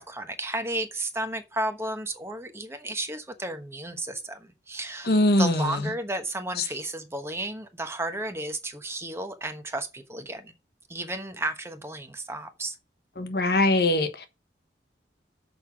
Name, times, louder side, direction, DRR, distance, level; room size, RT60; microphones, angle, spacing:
voice 1, 0.0-10.5 10.9-12.8, right 2 dB, 15° right, 1.1 m, -33 dB
voice 2, 5.0-5.9 6.6-6.7 13.2-14.3, left 2 dB, 55° left, 1.3 m, -22 dB
6.8 x 5.6 x 7.2 m
head